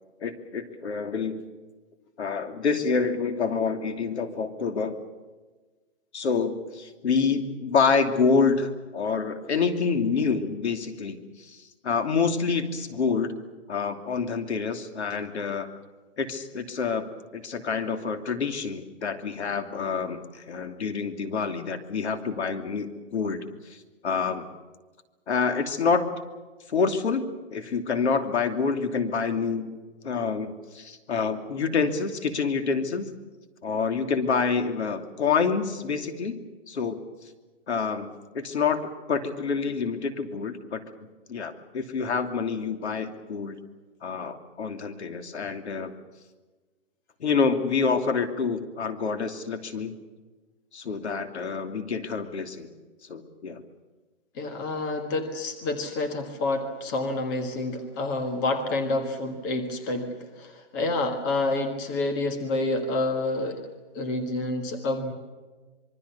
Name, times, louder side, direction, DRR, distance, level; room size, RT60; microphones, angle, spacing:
voice 1, 0.2-1.4 2.2-5.0 6.1-13.4 13.7-15.7 16.2-17.1 17.3-24.5 25.3-26.2 26.7-29.8 30.0-33.1 33.6-36.4 36.7-37.0 37.7-40.8 41.3-43.6 44.0-45.9 47.2-49.9 50.7-52.7 53.1-53.6, left 5 dB, 65° left, 7 dB, 3.0 m, -27 dB
voice 2, 54.3-63.6 63.9-65.1, left 2 dB, 15° left, 5 dB, 1.5 m, -28 dB
26.0 x 23.5 x 7.0 m, 1.3 s
hypercardioid pair, 175°, 36 cm